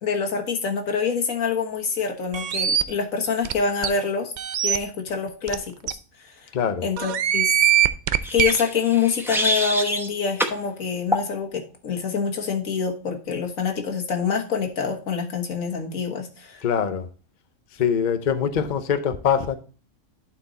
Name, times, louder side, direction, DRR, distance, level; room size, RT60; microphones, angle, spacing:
voice 1, 0.0-4.3 4.6-6.5 6.8-7.5 8.3-16.6, left 6 dB, 90° left, 1.8 m, -26 dB
sound 1, 2.3-2.8 3.4-3.5 3.8-3.9 4.4-4.8 5.5-5.6 5.9-6.0 7.0-8.5, right 10 dB, 85° right, 0.4 m, -21 dB
voice 2, 6.5-6.8 16.6-17.1 17.8-19.6, left 7 dB, 45° left, 0.8 m, -23 dB
sound 2, 8.2-10.1 10.4-10.6 11.1-11.3, equal, ahead, 0.8 m, -26 dB
11.0 x 4.5 x 4.0 m
omnidirectional pair, 1.4 m